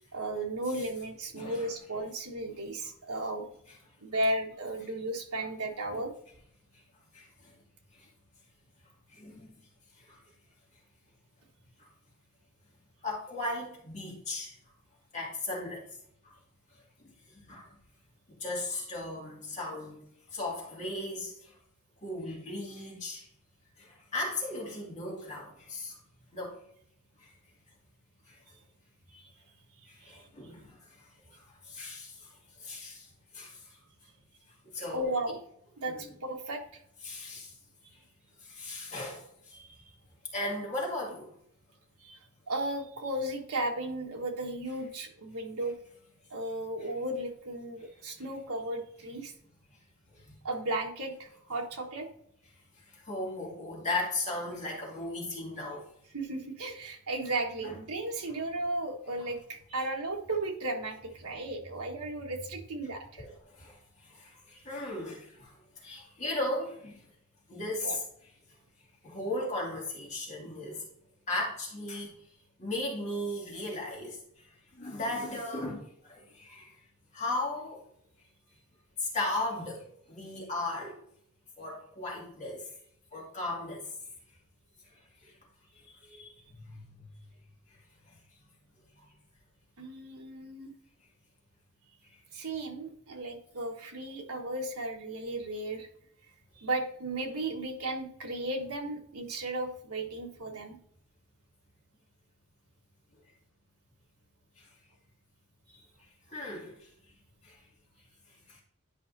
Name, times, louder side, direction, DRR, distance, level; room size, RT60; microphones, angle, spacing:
voice 1, 0.1-3.5 4.0-6.1 29.1-29.3 30.0-30.2 34.9-35.4 35.8-36.8 39.5-39.8 42.0-42.2 42.5-45.7 46.3-49.3 50.4-52.1 56.1-63.3 67.8-68.0 89.8-90.7 92.3-95.9 96.6-100.8 105.7-105.8, right 1 dB, 80° right, 2 dB, 1.4 m, -35 dB
voice 2, 1.3-1.7 5.9-6.0 7.1-7.5 7.9-8.1 9.1-9.6 10.0-10.2 11.8-11.9 13.0-14.6 15.1-15.9 16.2-16.4 17.0-17.7 18.4-21.6 22.0-23.3 23.8-26.0 26.3-26.6 27.2-27.3 28.3-28.4 29.9-33.1 33.3-33.7 34.7-35.0 35.9-36.0 37.0-37.5 37.9-38.0 38.4-39.5 40.3-41.3 50.1-50.4 52.8-55.9 57.6-57.7 59.2-59.3 63.2-67.1 67.5-68.0 69.0-70.8 71.3-72.1 72.6-76.7 77.1-77.8 79.0-81.0 81.6-82.7 83.1-83.9 85.2-85.3 85.8-87.1 88.1-88.2 104.6-104.7 106.3-106.9 107.4-107.6 108.5-108.6, left 2 dB, 30° left, -3 dB, 2.3 m, -37 dB
11.0 x 5.3 x 2.7 m, 0.68 s
head